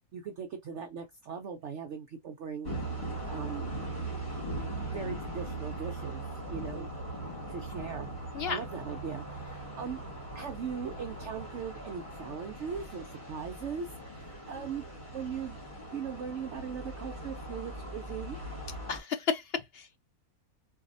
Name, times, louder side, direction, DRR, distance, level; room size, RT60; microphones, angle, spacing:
voice 1, 0.1-3.7 4.9-6.2 6.5-6.9 7.5-10.0 10.3-14.8 15.1-15.6 15.9-18.4, right 6 dB, 60° right, 0.8 m, -39 dB
sound 1, 2.6-19.0, right 2 dB, 30° left, 2.6 m, -40 dB
voice 2, 18.9-20.0, left 6 dB, 65° left, 0.6 m, -33 dB
4.0 x 2.7 x 2.5 m
omnidirectional pair, 1.6 m